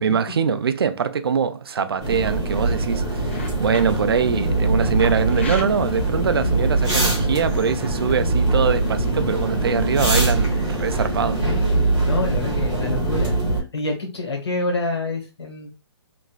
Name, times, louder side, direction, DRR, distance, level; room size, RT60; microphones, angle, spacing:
voice 1, 0.0-3.3 3.6-11.4, right 6 dB, 55° right, 0.4 m, -23 dB
sound 1, 2.0-13.6, right 2 dB, 5° right, 0.9 m, -22 dB
sound 2, 3.0-9.6, left 3 dB, 25° left, 0.3 m, -40 dB
voice 2, 11.4-15.7, left 3 dB, 65° left, 1.2 m, -28 dB
3.0 x 2.4 x 2.3 m
hypercardioid pair, 175°, 15 cm